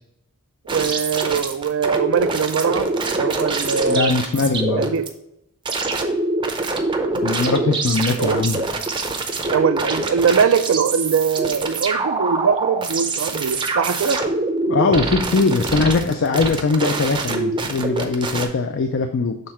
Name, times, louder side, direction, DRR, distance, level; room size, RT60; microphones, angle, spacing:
sound 1, 0.7-5.1 5.7-18.5, right 3 dB, 20° right, 0.6 m, -24 dB
voice 1, 0.7-4.1 4.7-5.1 8.2-8.4 9.5-14.2, right 6 dB, 65° right, 10 dB, 0.4 m, -21 dB
voice 2, 3.9-4.9 7.2-8.6 14.7-19.4, left 4 dB, 55° left, 6 dB, 0.4 m, -21 dB
6.6 x 3.6 x 4.3 m, 0.80 s
head